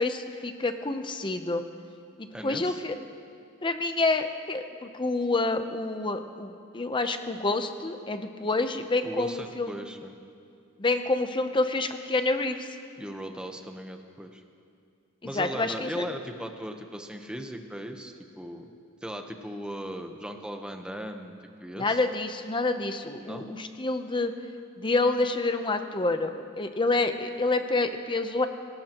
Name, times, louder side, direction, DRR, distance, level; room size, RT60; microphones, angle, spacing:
voice 1, 0.0-1.6 2.2-3.0 3.6-9.7 10.8-12.7 15.2-16.1 21.8-24.3 24.8-28.5, left 2 dB, 25° left, 8 dB, 0.7 m, -28 dB
voice 2, 2.3-2.9 9.0-10.2 13.0-14.4 15.2-18.7 19.0-21.3 21.6-22.1 23.2-23.4, equal, 5° right, 4 dB, 0.9 m, -38 dB
26.5 x 18.0 x 3.0 m, 2.4 s
head